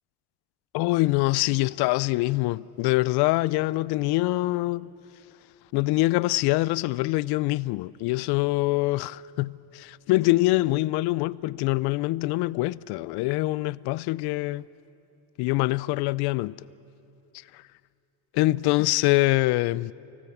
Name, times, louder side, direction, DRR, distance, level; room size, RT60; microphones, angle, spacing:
voice 1, 0.7-4.9 5.7-14.6 15.4-16.6 17.5-17.6 18.4-19.9, left 20 dB, 65° left, 0.5 m, -24 dB
25.0 x 17.0 x 8.4 m
cardioid pair, 145°, 42 cm